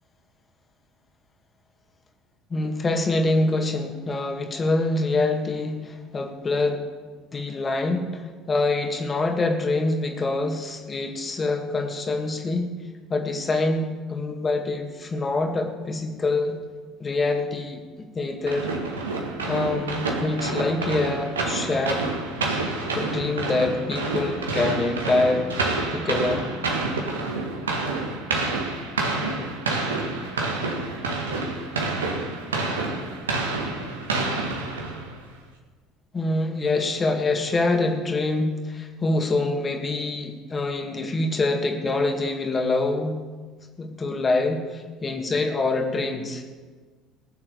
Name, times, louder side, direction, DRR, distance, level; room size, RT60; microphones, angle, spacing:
voice 1, 2.5-6.8 7.3-12.7 13.1-16.6 17.0-17.8 18.2-18.7 19.5-22.1 23.0-25.5 25.9-26.5 36.1-43.2 43.8-46.4, left 2 dB, 25° left, 5 dB, 2.0 m, -25 dB
sound 1, 18.5-35.2, right 3 dB, 80° right, 1.7 m, -28 dB
19.0 x 7.2 x 6.8 m, 1.4 s
figure-of-eight pair, 60°, 0 cm